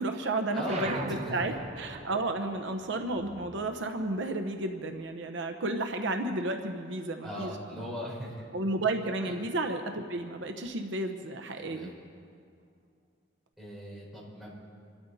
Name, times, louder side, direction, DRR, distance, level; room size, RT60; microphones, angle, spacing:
voice 1, 0.0-0.9 1.3-7.9 8.5-11.9, right 2 dB, 70° right, 5 dB, 0.9 m, -32 dB
voice 2, 0.5-1.5 7.2-8.3 9.2-9.4 11.6-12.0 13.6-14.5, equal, ahead, -6 dB, 4.9 m, -38 dB
sound 1, 0.6-5.5 5.8-7.2, right 3 dB, 35° right, 1.0 m, -44 dB
27.0 x 12.5 x 4.1 m, 2.3 s
head